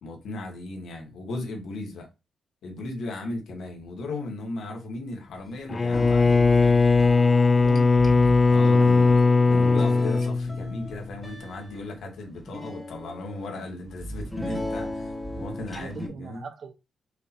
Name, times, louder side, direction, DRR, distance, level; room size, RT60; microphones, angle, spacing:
voice 1, 0.0-2.1 2.6-6.8 8.4-9.1 9.5-16.4, left 2 dB, 75° left, 1.4 m, -36 dB
Bowed string instrument, 5.7-11.0, left 4 dB, 30° left, 0.3 m, -19 dB
sound 1, 5.9-16.1, left 1 dB, 5° left, 1.1 m, -37 dB
voice 2, 8.6-9.7 15.7-16.7, right 5 dB, 55° right, 0.9 m, -40 dB
6.4 x 2.8 x 2.5 m
cardioid pair, 120°, 0 cm